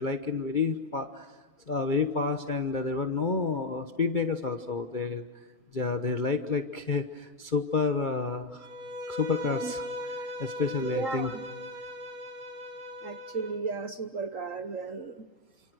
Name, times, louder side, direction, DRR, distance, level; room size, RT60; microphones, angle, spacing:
voice 1, 0.0-1.3 1.7-5.2 5.7-8.7 9.1-11.3, left 4 dB, 35° left, 6 dB, 0.7 m, -30 dB
Bowed string instrument, 8.6-13.6, left 1 dB, 75° right, 3.8 m, -38 dB
voice 2, 10.9-11.4 13.0-15.2, right 4 dB, 50° right, 8 dB, 1.0 m, -34 dB
29.0 x 27.0 x 6.3 m, 1.4 s
omnidirectional pair, 2.4 m